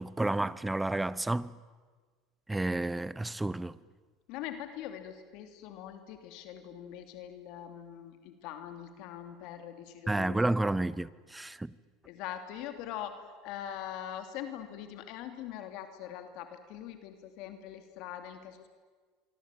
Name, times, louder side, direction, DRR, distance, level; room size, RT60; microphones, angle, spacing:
voice 1, 0.0-1.5 2.5-3.7 10.1-11.7, right 2 dB, 10° right, 0.8 m, -30 dB
voice 2, 4.3-10.6 12.0-18.7, left 10 dB, 65° left, 2.8 m, -42 dB
25.5 x 24.5 x 9.1 m
supercardioid pair, 105°, 0 cm